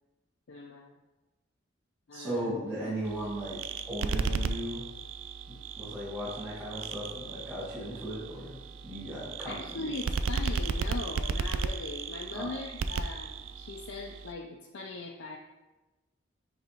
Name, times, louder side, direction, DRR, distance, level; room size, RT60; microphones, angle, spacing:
voice 1, 0.5-1.0 2.1-2.7 9.5-15.4, left 2 dB, 85° left, 0 dB, 0.5 m, -40 dB
voice 2, 2.1-3.6 3.9-4.8 5.8-8.6 8.8-9.9 12.3-12.5, right 1 dB, 15° right, -10 dB, 2.2 m, -36 dB
sound 1, 3.0-14.3, right 4 dB, 90° right, 0.4 m, -35 dB
9.2 x 3.9 x 3.0 m, 1.1 s
head